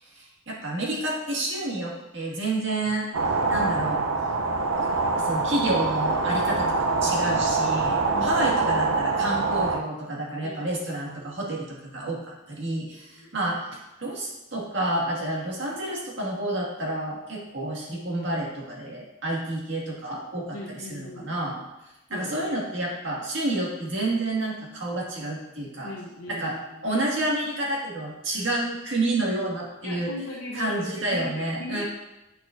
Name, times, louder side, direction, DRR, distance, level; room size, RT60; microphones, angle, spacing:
voice 1, 0.0-3.1 3.5-4.0 4.8-4.9 5.2-20.6 20.9-21.6 22.1-25.9 26.3-26.5 26.8-30.1 30.5-31.8, right 1 dB, 65° right, -3 dB, 1.9 m, -29 dB
sound 1, 3.1-9.8, right 3 dB, 85° right, 0.6 m, -24 dB
voice 2, 8.1-9.5 10.4-11.3 13.1-13.4 20.5-21.7 22.1-22.6 25.8-26.8 29.8-31.8, left 1 dB, 90° left, -4 dB, 0.9 m, -39 dB
9.0 x 6.4 x 2.5 m, 0.98 s
head